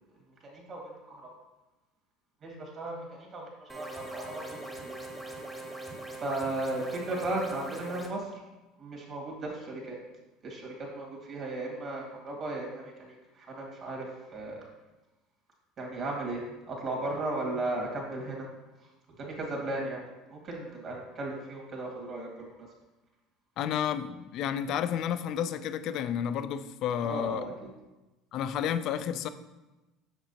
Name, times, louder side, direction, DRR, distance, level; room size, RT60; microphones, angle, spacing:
voice 1, 0.4-1.3 2.4-3.5 3.7-4.9 6.2-8.2 8.8-10.0 10.4-13.1 13.4-14.1 14.3-14.6 15.8-18.5 19.2-20.0 20.3-22.5 27.1-27.7, right 2 dB, 45° right, -1 dB, 2.0 m, -36 dB
sound 1, 3.7-8.1, right 2 dB, 15° right, 1.1 m, -41 dB
voice 2, 23.6-27.4 28.3-29.3, left 9 dB, 60° left, 12 dB, 0.4 m, -31 dB
6.1 x 5.9 x 2.8 m, 1.1 s
hypercardioid pair, 85°, 0 cm